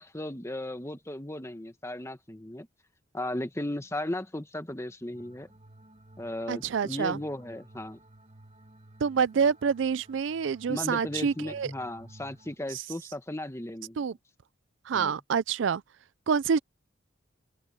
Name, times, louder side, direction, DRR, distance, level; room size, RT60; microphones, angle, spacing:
voice 1, 0.0-2.7 3.1-5.5 6.2-8.0 10.7-14.0 14.9-15.1, left 1 dB, 15° left, 1.2 m, -36 dB
sound 1, 5.1-12.6, right 1 dB, 35° right, 1.8 m, -54 dB
voice 2, 6.5-7.2 9.0-11.7 14.0-14.1 14.9-15.8 16.3-16.6, right 6 dB, 75° right, 0.4 m, -27 dB
head